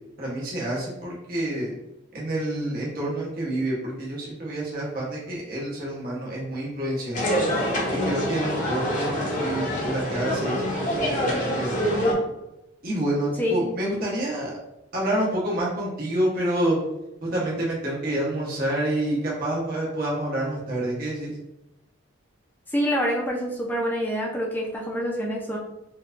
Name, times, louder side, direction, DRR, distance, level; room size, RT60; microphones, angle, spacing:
voice 1, 0.2-1.7 2.1-7.3 7.9-11.8 12.8-14.5 14.9-16.8 17.2-21.3, right 1 dB, 45° right, -5 dB, 0.9 m, -28 dB
sound 1, 7.1-12.1, equal, 40° left, 0.8 m, -26 dB
voice 2, 22.7-25.6, equal, 10° left, -2 dB, 0.5 m, -26 dB
4.4 x 2.3 x 2.5 m, 0.91 s
head